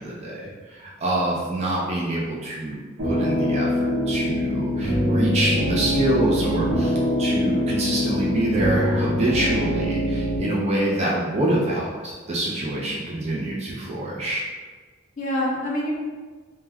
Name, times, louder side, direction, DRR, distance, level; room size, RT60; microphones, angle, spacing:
voice 1, 0.0-2.8 3.0-14.4, right 1 dB, 30° right, -5 dB, 0.4 m, -26 dB
sound 1, 3.0-10.4, equal, 75° right, 0.9 m, -23 dB
voice 2, 15.2-15.9, left 1 dB, 35° left, -4 dB, 0.4 m, -28 dB
2.2 x 2.2 x 3.4 m, 1.4 s
head